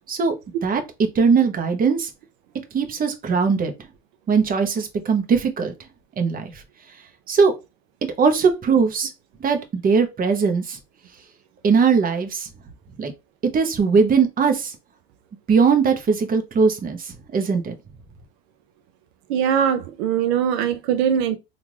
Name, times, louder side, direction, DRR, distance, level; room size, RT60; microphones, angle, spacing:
voice 1, 1.1-2.1 2.7-3.7 4.3-5.7 6.2-6.6 7.3-7.5 8.2-9.1 9.4-10.8 11.6-12.5 13.0-13.1 13.5-14.8 15.5-17.7, right 5 dB, 25° right, 0.9 m, -20 dB
voice 2, 19.3-21.4, right 8 dB, 80° right, 0.6 m, -21 dB
3.6 x 2.5 x 3.0 m
supercardioid pair, 100°, 32 cm